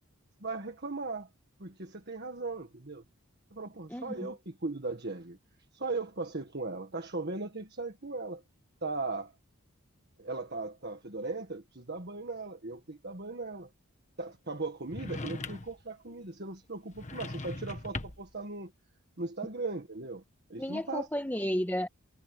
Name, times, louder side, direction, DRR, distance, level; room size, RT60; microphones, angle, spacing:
voice 1, 0.4-1.3 1.6-3.0 3.5-5.4 5.7-8.4 8.8-9.3 10.2-13.7 14.2-18.7 19.2-20.2 20.5-21.1, right 3 dB, 45° right, 1.7 m, -38 dB
voice 2, 3.9-4.3 20.6-21.9, equal, 10° left, 1.5 m, -32 dB
sound 1, 14.9-15.8 16.9-18.4, left 2 dB, 30° left, 1.4 m, -40 dB
head